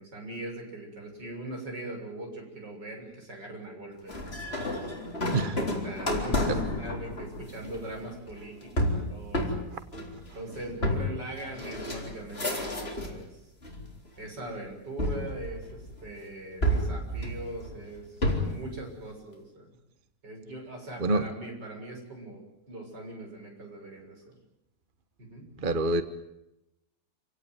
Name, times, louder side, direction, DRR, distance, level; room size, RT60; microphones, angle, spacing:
voice 1, 0.0-5.0 5.8-9.7 10.3-13.4 14.2-19.7 20.2-24.4 25.2-25.5, right 1 dB, 70° right, 1 dB, 7.5 m, -41 dB
sound 1, 4.1-13.2 13.6-14.3 15.0-16.1 16.6-18.7, equal, 30° left, 4.1 m, -31 dB
voice 2, 25.6-26.0, right 2 dB, 30° right, 11 dB, 1.2 m, -26 dB
28.5 x 17.0 x 9.5 m, 0.88 s
omnidirectional pair, 2.0 m